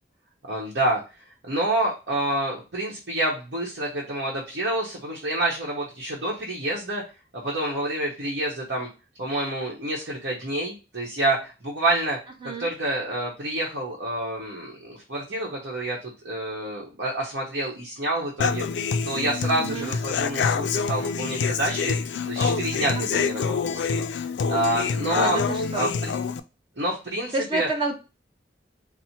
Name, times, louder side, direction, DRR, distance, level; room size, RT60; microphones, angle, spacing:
voice 1, 0.5-1.0 1.4-7.0 7.3-8.9 9.2-12.2 12.4-18.6 19.0-22.0 22.3-24.1 24.5-25.4 25.7-26.1 26.8-27.7, right 1 dB, 75° right, -3 dB, 0.9 m, -28 dB
Human voice / Acoustic guitar, 18.4-26.4, left 5 dB, 80° left, 0.3 m, -26 dB
voice 2, 19.6-19.9 22.7-23.2 25.1-25.9 27.3-27.9, right 2 dB, 30° right, 3 dB, 0.7 m, -29 dB
4.2 x 2.1 x 4.3 m, 0.30 s
head